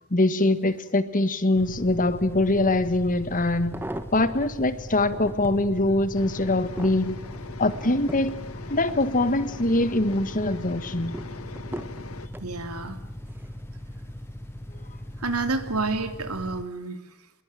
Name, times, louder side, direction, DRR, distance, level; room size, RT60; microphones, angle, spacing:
voice 1, 0.1-3.8 4.1-7.2 7.6-8.3 8.7-11.1, left 2 dB, 40° left, 1.6 m, -23 dB
sound 1, 1.5-16.6, left 1 dB, 10° left, 1.2 m, -40 dB
sound 2, 3.5-4.5 5.0-5.7 6.2-9.6 10.0-10.5 11.1-12.5 13.3-13.6 13.9-14.0, right 1 dB, 10° right, 1.6 m, -40 dB
sound 3, 6.1-12.3, left 4 dB, 70° left, 1.6 m, -41 dB
voice 2, 12.4-13.0 15.2-17.0, right 3 dB, 85° right, 3.1 m, -29 dB
26.5 x 22.0 x 9.1 m
head